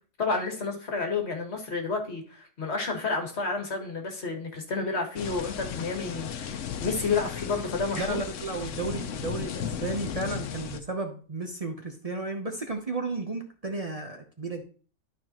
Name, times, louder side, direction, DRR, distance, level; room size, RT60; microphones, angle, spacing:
voice 1, 0.2-6.5 6.8-8.2, left 4 dB, 60° left, 3 dB, 1.8 m, -30 dB
sound 1, 5.2-10.8, left 8 dB, 85° left, 1.1 m, -35 dB
voice 2, 8.0-14.6, right 3 dB, 35° right, 3 dB, 0.8 m, -33 dB
12.0 x 4.8 x 2.9 m, 0.40 s
omnidirectional pair, 1.3 m